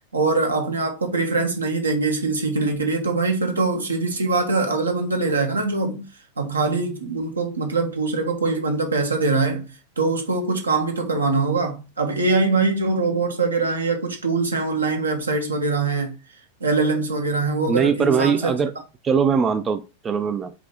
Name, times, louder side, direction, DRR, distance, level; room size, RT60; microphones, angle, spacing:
voice 1, 0.1-6.0 6.4-9.6 10.0-16.1 16.6-18.5, right 3 dB, 75° right, 1.0 m, -23 dB
voice 2, 17.7-18.7 19.0-20.5, right 6 dB, 20° right, 0.3 m, -21 dB
4.9 x 2.8 x 3.6 m
figure-of-eight pair, 90°, 0 cm